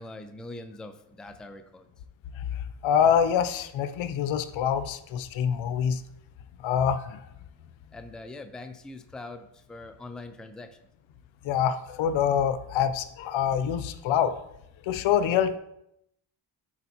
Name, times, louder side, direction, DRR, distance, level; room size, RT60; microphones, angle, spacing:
voice 1, 0.0-1.9 7.9-10.8, left 2 dB, ahead, 7 dB, 0.5 m, -42 dB
voice 2, 2.8-6.0 6.6-7.2 11.4-14.4 14.8-15.6, left 8 dB, 65° left, 11 dB, 0.7 m, -25 dB
10.5 x 4.5 x 2.9 m, 0.81 s
supercardioid pair, 70°, 49 cm